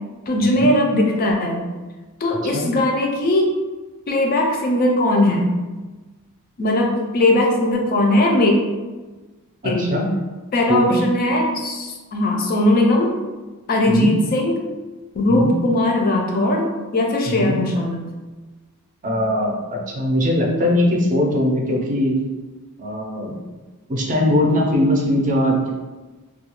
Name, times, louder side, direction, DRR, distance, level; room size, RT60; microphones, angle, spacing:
voice 1, 0.3-1.7 2.2-3.5 4.1-5.6 6.6-8.5 9.6-10.0 10.5-13.2 13.7-14.7 15.1-18.1, left 1 dB, 40° left, 1 dB, 0.4 m, -19 dB
voice 2, 9.6-10.1 10.7-11.0 13.9-14.1 15.3-15.5 17.3-17.6 19.0-22.2 22.8-23.4 23.9-25.7, left 1 dB, 35° right, -1 dB, 0.5 m, -20 dB
2.3 x 2.2 x 2.9 m, 1.2 s
head